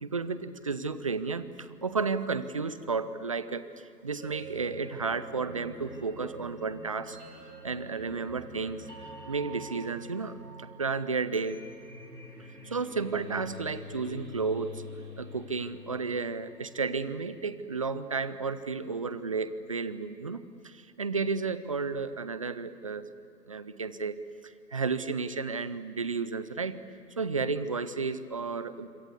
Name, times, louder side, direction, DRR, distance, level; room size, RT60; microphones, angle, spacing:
voice 1, 0.0-7.2 7.6-8.9 9.3-11.6 12.6-14.8 15.2-23.0 23.5-24.1 24.4-26.8 27.2-28.9, right 4 dB, 20° right, 14 dB, 0.6 m, -32 dB
sound 1, 4.2-17.2, equal, 85° right, 8.0 m, -46 dB
26.5 x 26.5 x 8.2 m, 2.6 s
figure-of-eight pair, 140°, 49 cm